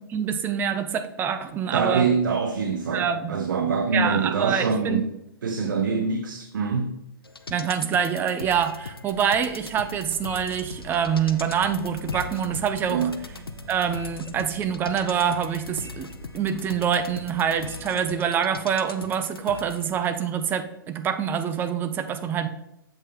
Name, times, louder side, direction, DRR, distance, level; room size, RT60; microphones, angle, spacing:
voice 1, 0.1-2.1 2.9-3.3 3.9-5.0 7.5-13.0 13.7-16.1 16.3-22.5, right 8 dB, 15° right, 9 dB, 0.6 m, -25 dB
voice 2, 1.7-5.1 5.4-7.0 12.9-13.2, right 5 dB, 60° right, 5 dB, 0.8 m, -24 dB
sound 1, 7.2-20.1 20.4-20.5, left 4 dB, 85° left, 0.6 m, -40 dB
sound 2, 9.1-18.0, right 1 dB, 15° left, 2.5 m, -45 dB
7.5 x 5.2 x 3.9 m, 0.85 s
figure-of-eight pair, 120°, 12 cm